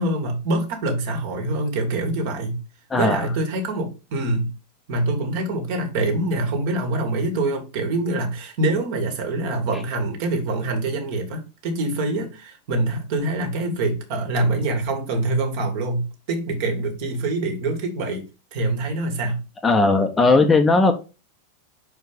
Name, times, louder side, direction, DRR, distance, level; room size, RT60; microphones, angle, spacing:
voice 1, 0.0-2.6 3.0-4.5 4.9-18.2 18.5-19.4, right 2 dB, 50° right, 1.9 m, -25 dB
voice 2, 2.9-3.2 19.6-20.9, left 3 dB, 15° left, 0.9 m, -17 dB
5.7 x 4.6 x 5.1 m
figure-of-eight pair, 90°, 0 cm